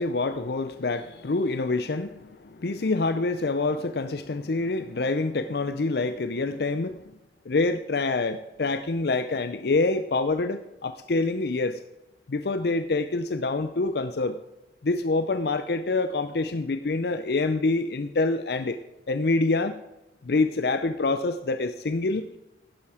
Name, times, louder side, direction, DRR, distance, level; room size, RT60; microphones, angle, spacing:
voice 1, 0.0-7.0 7.5-11.8 12.3-14.4 14.8-18.8 19.1-19.8 20.2-22.3, left 3 dB, 60° left, 10 dB, 0.6 m, -26 dB
11.5 x 10.5 x 4.9 m, 0.96 s
head